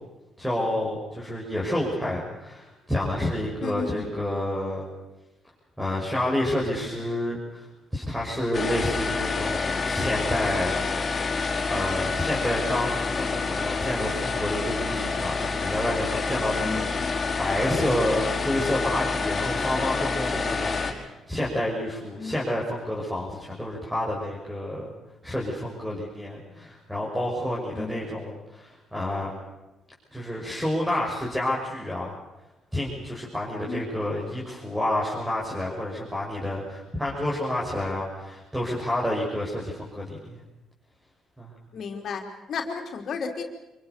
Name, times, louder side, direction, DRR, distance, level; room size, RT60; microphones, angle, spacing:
voice 1, 0.4-4.9 5.8-7.6 7.9-10.8 11.7-24.9 25.2-29.4 30.1-32.2 32.7-40.4 41.4-41.5, left 1 dB, 5° right, -4 dB, 6.4 m, -29 dB
voice 2, 3.6-4.1 16.6-17.1 22.2-22.5 27.7-28.1 33.6-33.8 41.7-43.4, left 5 dB, 60° left, 3 dB, 3.7 m, -33 dB
sound 1, 8.5-20.9, left 4 dB, 35° left, 5.2 m, -28 dB
26.0 x 22.5 x 7.0 m, 1.0 s
cardioid pair, 90°, 0 cm